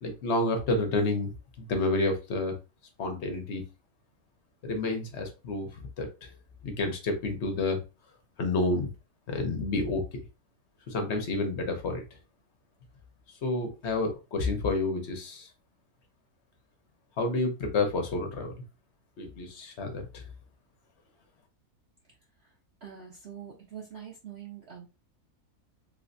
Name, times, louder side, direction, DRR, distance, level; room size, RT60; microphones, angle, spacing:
voice 1, 0.0-2.6 3.0-3.6 4.6-6.1 6.6-7.8 8.4-8.9 9.3-10.2 10.9-12.0 13.4-15.5 17.2-18.6 19.2-20.2, left 2 dB, 50° left, 5 dB, 1.1 m, -29 dB
voice 2, 22.8-24.9, right 8 dB, 55° right, -2 dB, 0.8 m, -44 dB
3.2 x 3.1 x 2.6 m, 0.29 s
omnidirectional pair, 1.6 m